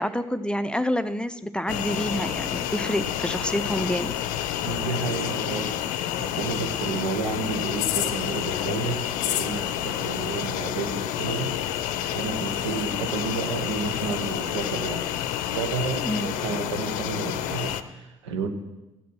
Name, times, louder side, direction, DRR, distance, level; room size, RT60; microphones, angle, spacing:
voice 1, 0.0-4.1 16.0-16.3, equal, 5° left, 11 dB, 0.6 m, -28 dB
sound 1, 1.7-17.8, left 11 dB, 60° left, 0.6 m, -29 dB
voice 2, 4.6-5.8 6.2-11.6 12.1-15.0 15.5-18.5, right 4 dB, 75° right, 6 dB, 1.3 m, -31 dB
14.0 x 9.3 x 6.2 m, 1.0 s
figure-of-eight pair, 50°, 15 cm